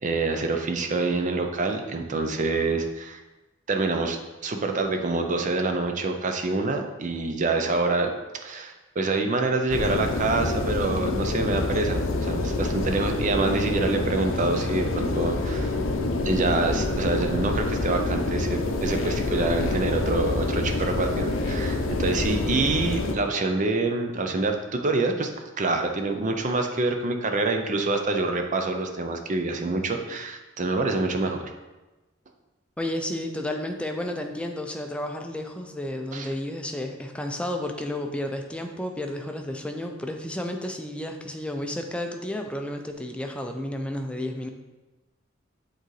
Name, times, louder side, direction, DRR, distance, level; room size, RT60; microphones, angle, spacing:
voice 1, 0.0-3.2 3.7-4.2 4.4-8.1 8.4-15.8 16.2-25.3 25.6-31.5 36.1-36.3, right 3 dB, 40° right, 5 dB, 0.6 m, -26 dB
sound 1, 9.7-23.1, left 2 dB, 80° left, 0.6 m, -27 dB
voice 2, 32.8-44.5, left 1 dB, 5° left, 3 dB, 0.5 m, -32 dB
7.8 x 3.8 x 3.2 m, 1.1 s
head